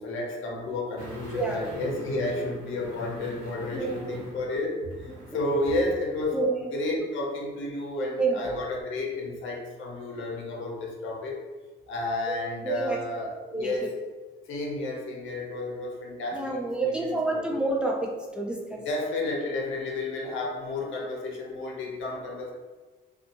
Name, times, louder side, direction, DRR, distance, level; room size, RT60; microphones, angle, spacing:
voice 1, 0.0-6.4 6.7-11.4 11.9-13.9 14.5-16.6 16.8-17.5 18.7-22.5, left 2 dB, 80° left, -1 dB, 0.7 m, -31 dB
sound 1, 1.0-5.9 6.2-6.3, right 1 dB, 85° right, 0.8 m, -43 dB
voice 2, 3.7-4.2 6.3-6.5 8.2-8.5 12.6-13.0 13.5-13.7 16.3-18.9, right 3 dB, 5° right, -1 dB, 0.4 m, -28 dB
2.6 x 2.3 x 2.6 m, 1.3 s
cardioid pair, 90°, 20 cm